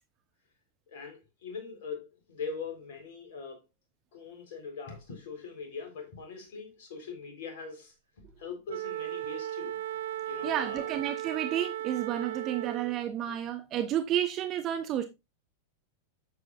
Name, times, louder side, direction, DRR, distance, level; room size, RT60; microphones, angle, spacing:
voice 1, 0.9-3.6 4.1-9.8 10.3-10.9 13.3-13.4, left 5 dB, 50° left, 4.0 m, -42 dB
Wind instrument woodwind instrument, 8.7-13.0, right 12 dB, 60° right, 0.4 m, -36 dB
voice 2, 10.4-15.0, right 11 dB, 35° right, 1.0 m, -31 dB
9.6 x 7.6 x 2.5 m
figure-of-eight pair, 90°, 0 cm